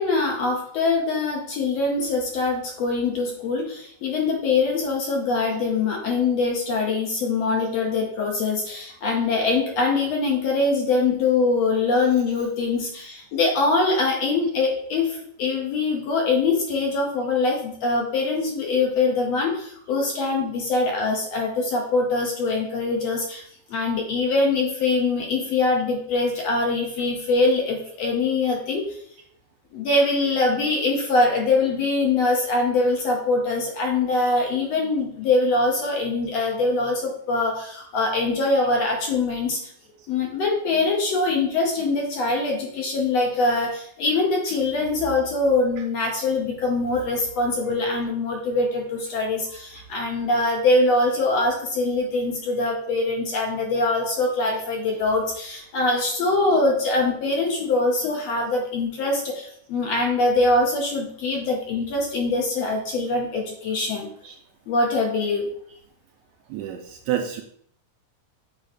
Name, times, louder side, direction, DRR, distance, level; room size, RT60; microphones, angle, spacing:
voice 1, 0.0-23.4 23.7-28.9 29.7-39.6 40.1-64.1 64.7-65.5, left 3 dB, 65° left, 0 dB, 1.7 m, -23 dB
voice 2, 66.5-67.4, right 10 dB, 80° right, 4 dB, 1.8 m, -30 dB
7.6 x 3.0 x 5.0 m, 0.63 s
omnidirectional pair, 3.7 m